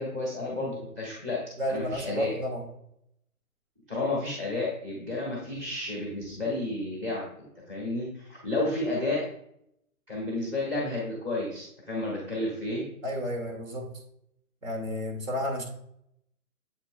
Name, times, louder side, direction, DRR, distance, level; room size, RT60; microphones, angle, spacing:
voice 1, 0.0-1.4 1.7-2.3 3.9-7.2 7.7-9.2 10.1-12.8, left 2 dB, 10° right, -4 dB, 0.8 m, -31 dB
voice 2, 1.6-2.6 13.0-13.9 14.6-15.7, equal, 60° right, 3 dB, 2.0 m, -31 dB
7.7 x 5.5 x 2.2 m, 0.74 s
hypercardioid pair, 170°, 45 cm